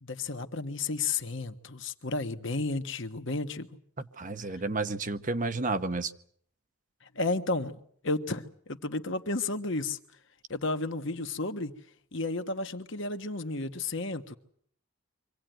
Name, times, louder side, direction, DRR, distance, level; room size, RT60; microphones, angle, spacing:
voice 1, 0.0-3.7 7.1-7.8 8.0-10.0 10.5-11.7 12.1-14.3, left 3 dB, 55° left, 7 dB, 1.5 m, -32 dB
voice 2, 4.0-6.1, right 3 dB, 35° right, 10 dB, 0.9 m, -31 dB
25.5 x 17.5 x 9.2 m, 0.64 s
head